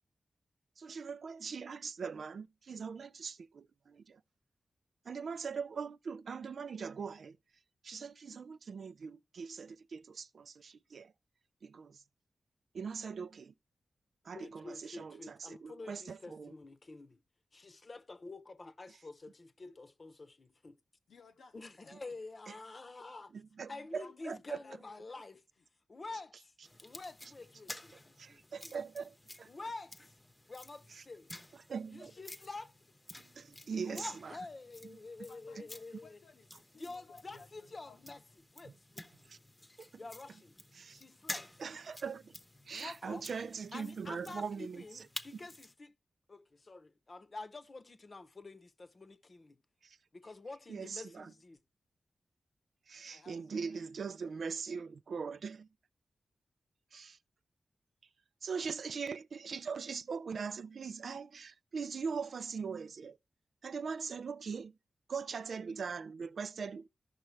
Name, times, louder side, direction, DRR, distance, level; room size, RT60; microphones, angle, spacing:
voice 1, 0.8-4.2 5.0-7.4 7.8-11.1 11.6-12.0 12.7-13.5 14.2-16.5 18.9-19.0 22.5-22.6 23.3-24.6 27.9-29.5 30.9-31.0 31.5-32.1 33.2-34.4 34.9-35.0 38.6-38.7 39.3-39.4 39.8-40.0 40.7-41.0 41.6-42.4 42.7-45.1 45.3-45.4 49.8-50.0 50.7-51.3 52.9-55.7 56.9-57.2 58.4-63.2 63.6-64.8 65.1-66.9, right 5 dB, 75° right, 0.4 m, -41 dB
voice 2, 14.3-17.2 17.5-20.8 21.5-23.3 23.6-25.4 25.9-26.5 26.8-28.7 29.5-30.1 30.5-31.3 31.9-32.7 33.8-36.2 36.7-38.2 38.5-39.3 40.0-40.6 40.9-41.5 42.7-43.2 43.7-45.9 46.3-49.6 50.1-51.6, left 3 dB, 45° left, 0.8 m, -48 dB
voice 3, 21.1-22.2 23.0-23.1 24.0-25.2 25.6-25.7 32.1-32.5 35.3-38.2 53.1-54.4, left 4 dB, 85° left, 0.9 m, -59 dB
sound 1, 26.6-45.7, left 1 dB, 20° left, 0.8 m, -51 dB
14.0 x 5.7 x 3.2 m
cardioid pair, 65°, 0 cm